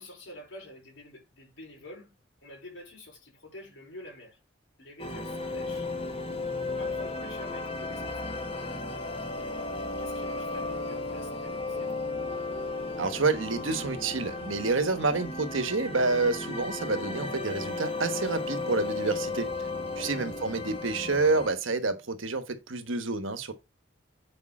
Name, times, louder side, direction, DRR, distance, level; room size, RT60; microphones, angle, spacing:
voice 1, 0.0-2.1 2.4-4.4 4.8-5.9 6.3-8.4 9.3-11.9 19.9-20.2, left 1 dB, 65° left, 5.0 m, -48 dB
sound 1, 5.0-21.5, left 3 dB, 25° left, 1.4 m, -35 dB
voice 2, 13.0-19.5 20.0-23.5, right 3 dB, 75° right, 1.2 m, -28 dB
8.8 x 5.2 x 4.3 m
head